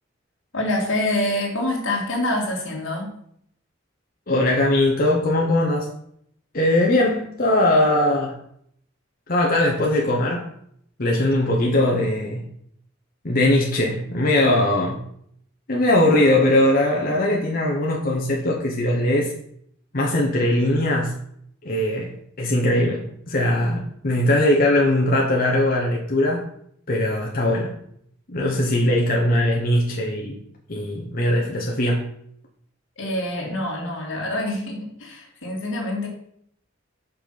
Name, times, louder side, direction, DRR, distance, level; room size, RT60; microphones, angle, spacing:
voice 1, 0.5-3.1 33.0-36.1, left 1 dB, 85° left, -1 dB, 2.4 m, -26 dB
voice 2, 4.3-5.9 6.5-8.4 9.3-10.5 11.0-12.4 13.2-15.0 15.7-19.3 19.9-21.1 21.6-26.4 26.9-27.7 28.3-30.4 30.7-32.0, left 1 dB, 50° left, -2 dB, 1.1 m, -20 dB
5.9 x 5.2 x 5.8 m, 0.69 s
head